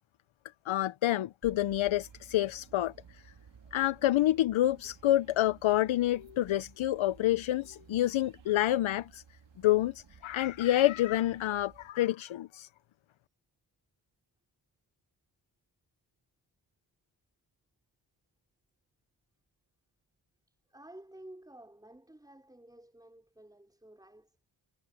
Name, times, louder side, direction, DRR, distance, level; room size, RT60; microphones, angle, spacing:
voice 1, 0.7-3.2 3.7-9.2 9.6-12.7, left 14 dB, 90° left, 0.7 m, -28 dB
sound 1, 1.4-11.9, right 7 dB, 65° right, 3.8 m, -57 dB
voice 2, 20.7-24.3, right 1 dB, 10° right, 4.5 m, -52 dB
wide cardioid pair, 155°, 46 cm